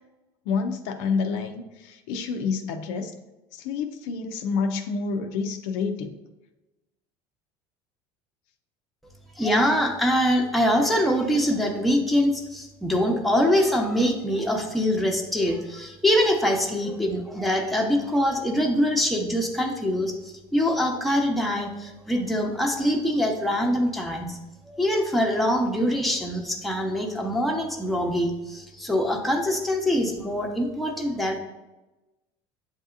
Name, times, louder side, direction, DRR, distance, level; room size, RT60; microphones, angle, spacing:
voice 1, 0.5-3.1 3.5-6.2, left 5 dB, 75° left, 6 dB, 0.5 m, -28 dB
voice 2, 9.4-24.4 24.7-31.4, equal, ahead, 0 dB, 0.8 m, -24 dB
7.8 x 2.7 x 2.4 m, 1.1 s
supercardioid pair, 100°, 14 cm